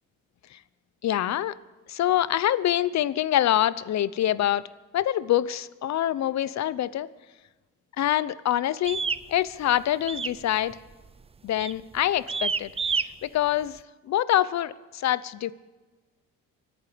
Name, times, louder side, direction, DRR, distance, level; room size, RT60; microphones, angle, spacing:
voice 1, 1.0-1.6 1.9-4.7 4.9-7.1 8.0-10.8 11.4-15.5, left 12 dB, 65° left, 17 dB, 0.8 m, -25 dB
sound 1, 8.9-9.2 10.1-10.4 10.7-11.1 11.6-11.8 12.3-13.1, right 5 dB, 20° right, 0.5 m, -28 dB
25.0 x 8.9 x 5.2 m, 1.2 s
cardioid pair, 90°, 30 cm